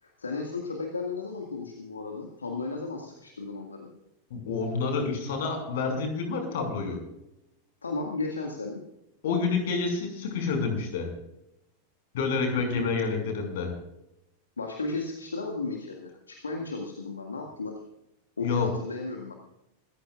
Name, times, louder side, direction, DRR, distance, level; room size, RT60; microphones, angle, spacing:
voice 1, 0.0-3.9 7.8-8.8 12.5-13.4 14.6-17.8 18.4-19.3, left 3 dB, 75° left, 2 dB, 2.0 m, -34 dB
voice 2, 4.3-7.0 9.2-11.1 12.1-13.7 18.4-18.7, left 4 dB, 55° left, 4 dB, 5.8 m, -28 dB
26.0 x 15.0 x 2.5 m, 0.85 s
figure-of-eight pair, 90°, 0 cm